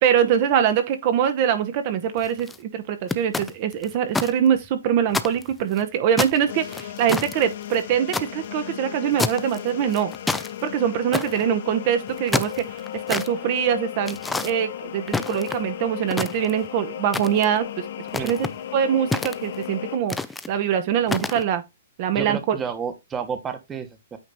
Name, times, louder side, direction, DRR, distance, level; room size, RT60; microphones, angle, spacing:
voice 1, 0.0-14.2 14.4-17.7 18.2-18.4 18.7-20.2 20.5-21.6 22.0-22.6, right 9 dB, 40° right, 1.0 m, -23 dB
sound 1, 2.2-2.6 3.1-4.3 4.6-4.7 5.1-5.8 6.2-8.3 9.2-9.6 9.9-10.5 11.1-11.4 12.1-13.3 14.1-14.5 15.1-15.7 16.1-16.7 17.1-17.6 18.1-18.5 19.1-19.7 20.1-20.5 21.1-21.4, left 3 dB, 5° left, 0.4 m, -28 dB
sound 2, 6.5-20.0, left 11 dB, 60° left, 1.0 m, -35 dB
voice 2, 18.2-18.5 22.1-24.2, right 6 dB, 15° right, 1.1 m, -31 dB
8.9 x 3.2 x 4.0 m
hypercardioid pair, 150°, 0 cm